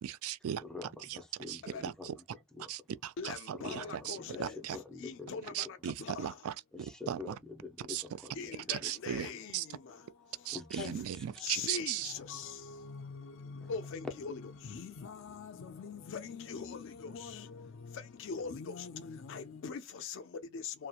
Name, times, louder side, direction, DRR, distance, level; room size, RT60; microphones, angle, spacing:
voice 1, 0.0-0.6 1.1-1.2 1.5-2.1 2.7-4.8 5.5-7.3 7.9-8.0 8.7-9.7 10.5-12.1, right 10 dB, 70° right, 0.3 m, -38 dB
voice 2, 0.6-2.7 3.5-5.7 6.7-8.9 10.5-11.6 13.6-13.7, left 3 dB, ahead, 0.5 m, -47 dB
voice 3, 3.2-6.4 8.4-11.0 11.4-20.9, left 5 dB, 55° left, 0.4 m, -43 dB
2.8 x 2.1 x 2.3 m
head